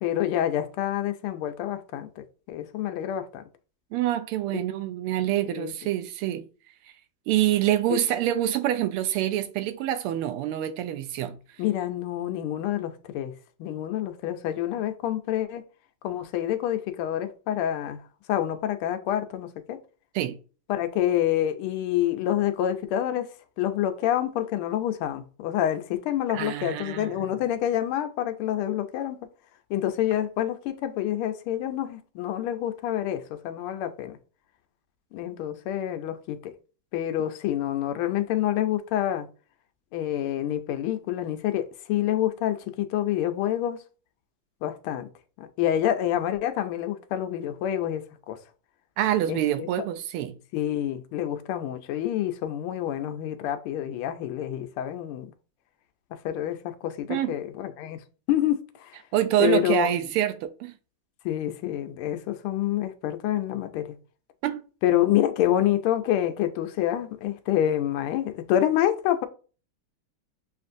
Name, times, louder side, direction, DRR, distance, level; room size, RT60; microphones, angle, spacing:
voice 1, 0.0-2.1 2.5-3.4 5.5-5.7 11.6-13.3 13.6-15.6 16.0-18.0 18.3-19.8 20.7-23.3 23.6-29.3 29.7-34.2 35.1-36.5 36.9-39.3 39.9-43.8 44.6-45.1 45.4-48.4 49.3-49.7 50.5-55.3 56.2-58.0 58.3-59.0 59.4-59.9 61.2-63.9 64.8-69.3, left 12 dB, 80° left, 1.5 m, -27 dB
voice 2, 3.9-6.5 7.3-11.4 20.1-20.3 26.3-27.2 49.0-50.3 57.1-57.3 59.1-60.7 64.4-64.6, right 12 dB, 90° right, 1.5 m, -26 dB
7.2 x 2.5 x 2.5 m
omnidirectional pair, 2.4 m